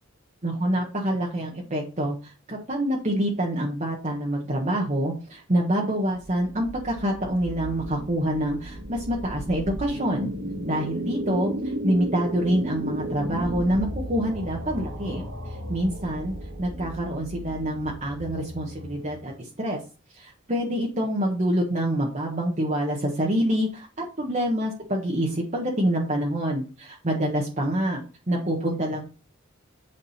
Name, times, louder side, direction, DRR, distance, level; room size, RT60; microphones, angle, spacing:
voice 1, 0.4-10.3 10.6-19.8 20.1-23.7 24.0-29.0, right 1 dB, 35° right, -1 dB, 1.4 m, -26 dB
sound 1, 6.1-19.3, right 1 dB, 70° right, 2.4 m, -34 dB
8.7 x 5.2 x 4.2 m, 0.35 s
head